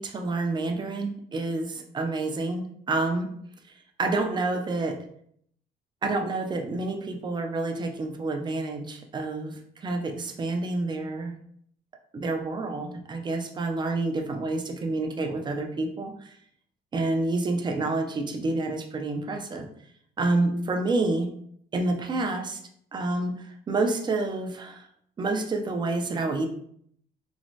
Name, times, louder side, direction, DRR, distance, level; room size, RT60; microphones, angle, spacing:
voice 1, 0.0-3.3 4.0-5.0 6.0-11.4 12.1-16.3 16.9-19.7 20.2-21.3 21.7-22.6 22.9-24.8 25.2-26.5, right 2 dB, 25° right, 4 dB, 0.4 m, -28 dB
3.1 x 2.1 x 2.6 m, 0.65 s
cardioid pair, 110°, 17 cm